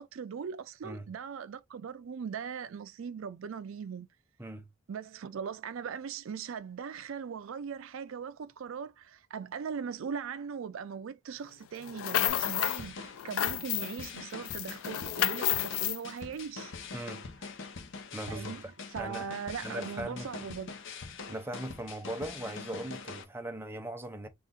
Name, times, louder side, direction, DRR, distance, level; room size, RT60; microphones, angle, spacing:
voice 1, 0.0-4.1 4.9-16.7 18.3-18.6 18.9-20.7, right 6 dB, 70° right, 0.4 m, -40 dB
sound 1, 11.8-12.8 13.2-14.1 14.5-16.0, left 13 dB, 80° left, 0.3 m, -30 dB
sound 2, 12.3-23.2, left 4 dB, 60° left, 0.7 m, -44 dB
voice 2, 16.9-17.6 18.1-18.6 19.0-19.3 19.6-20.3 21.3-24.3, right 1 dB, 10° right, 0.5 m, -39 dB
3.9 x 2.4 x 3.7 m
head